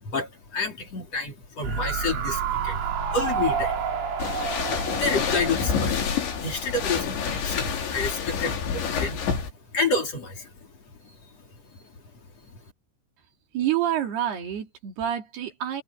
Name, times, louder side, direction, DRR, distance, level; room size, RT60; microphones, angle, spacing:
voice 1, 0.0-3.8 4.9-6.0 6.4-9.2 9.7-10.5 11.0-11.2, left 3 dB, 40° left, 4.0 m, -29 dB
sound 1, 1.6-6.9 7.2-7.3, right 6 dB, 85° right, 6.0 m, -30 dB
sound 2, 4.2-9.5, left 6 dB, 90° left, 6.1 m, -28 dB
voice 2, 13.5-15.8, right 11 dB, 65° right, 4.9 m, -27 dB
omnidirectional pair, 5.0 m